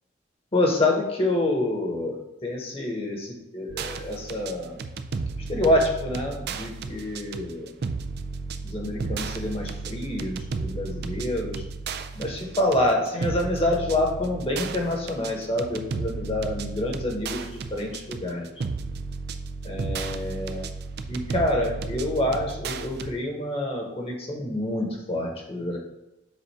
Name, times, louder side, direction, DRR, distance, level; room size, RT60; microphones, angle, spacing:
voice 1, 0.5-4.8 5.5-7.7 8.6-11.6 12.1-18.5 19.6-20.7 21.1-25.8, left 1 dB, 30° left, 0 dB, 1.2 m, -27 dB
sound 1, 3.7-23.1, right 4 dB, 55° right, 0.4 m, -34 dB
7.4 x 2.5 x 5.6 m, 0.92 s
head